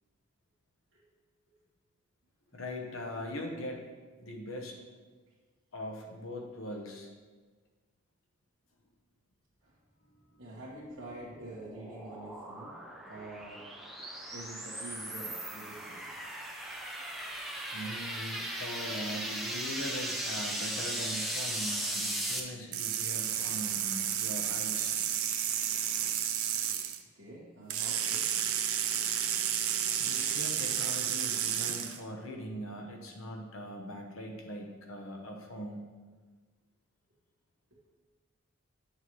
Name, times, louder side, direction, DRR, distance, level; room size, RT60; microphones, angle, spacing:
voice 1, 2.5-3.9 4.2-4.8 5.7-7.1 17.7-24.9 30.0-35.9, equal, 75° left, 2 dB, 0.9 m, -41 dB
voice 2, 10.4-12.8 13.0-13.7 14.3-16.1 27.1-28.3 37.7-37.8, right 1 dB, 65° right, -8 dB, 1.4 m, -47 dB
sound 1, 10.7-22.4, right 1 dB, ahead, 0.6 m, -37 dB
sound 2, 22.7-27.0 27.7-32.0, right 9 dB, 90° right, 0.6 m, -31 dB
9.6 x 6.6 x 3.1 m, 1.4 s
head